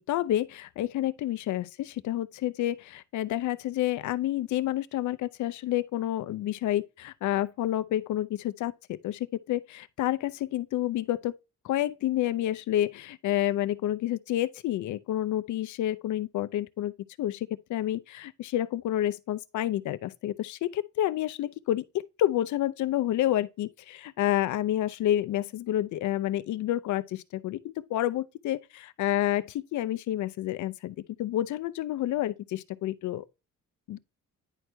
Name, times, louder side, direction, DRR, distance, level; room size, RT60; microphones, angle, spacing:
voice 1, 0.1-11.3 11.6-16.9 17.2-21.8 22.2-33.2 33.9-34.0, left 13 dB, 75° left, 0.6 m, -29 dB
10.0 x 4.5 x 3.3 m
cardioid pair, 90°, 30 cm